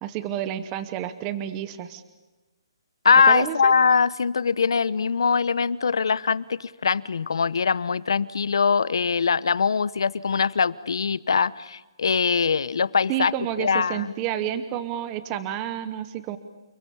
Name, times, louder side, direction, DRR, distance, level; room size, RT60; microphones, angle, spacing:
voice 1, 0.0-2.0 3.3-3.7 13.1-16.4, right 11 dB, 15° right, 12 dB, 0.9 m, -30 dB
voice 2, 3.0-13.3 13.6-14.1, left 5 dB, 65° left, 19 dB, 1.0 m, -22 dB
30.0 x 21.0 x 8.6 m, 1.1 s
hypercardioid pair, 180°, 3 cm